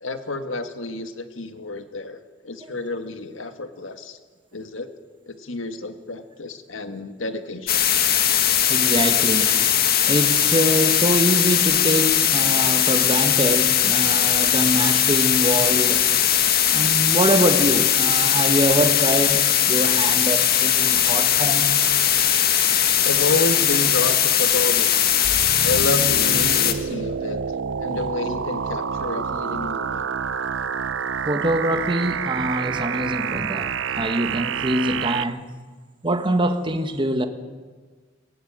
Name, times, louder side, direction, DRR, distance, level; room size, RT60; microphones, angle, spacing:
voice 1, 0.0-4.2 4.5-4.9 5.3-7.9 23.0-25.1 25.6-27.4 27.8-30.1, left 2 dB, 80° left, 1.8 m, -29 dB
sound 1, 7.7-26.7, left 10 dB, 50° left, 1.7 m, -19 dB
voice 2, 8.7-9.6 10.1-16.1 16.7-21.8 31.2-35.4 36.0-37.3, right 1 dB, 25° right, 1.7 m, -24 dB
sound 2, 25.2-35.2, right 6 dB, 75° right, 0.7 m, -28 dB
22.5 x 17.5 x 8.9 m
head